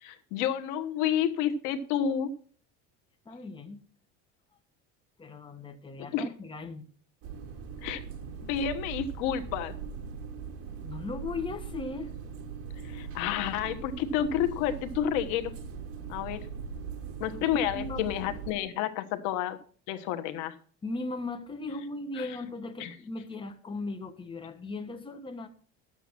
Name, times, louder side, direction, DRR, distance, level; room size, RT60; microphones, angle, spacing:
voice 1, 0.0-2.3 6.1-6.3 7.8-8.0 8.4-9.7 12.8-15.5 16.1-16.4 17.2-19.6 19.9-20.5 22.2-22.3 22.8-22.9, left 9 dB, 75° left, 1.3 m, -30 dB
voice 2, 3.2-3.8 5.2-6.9 10.8-12.1 17.5-18.0 20.8-25.5, left 3 dB, 15° left, 1.3 m, -37 dB
sound 1, 7.2-18.5, right 6 dB, 50° right, 2.0 m, -40 dB
11.0 x 8.1 x 6.0 m
cardioid pair, 135°, 30 cm